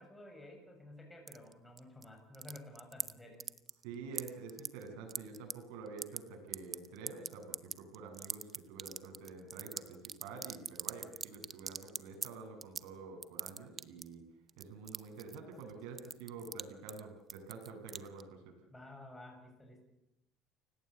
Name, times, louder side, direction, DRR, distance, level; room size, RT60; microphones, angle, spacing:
voice 1, 0.0-3.4 18.7-19.8, left 1 dB, 5° left, 2 dB, 7.1 m, -52 dB
sound 1, 1.3-2.1 2.3-3.1 3.4-3.8 4.1-5.5 5.9-6.2 6.5-12.3 12.6-12.9 13.2-14.1 14.5-15.7 16.0-16.6 16.9-17.0 17.3-18.2, right 6 dB, 30° right, 1.0 m, -40 dB
voice 2, 3.8-14.2 14.6-18.5, right 4 dB, 80° right, 3 dB, 7.8 m, -48 dB
29.0 x 18.0 x 8.5 m, 0.86 s
cardioid pair, 125°, 0 cm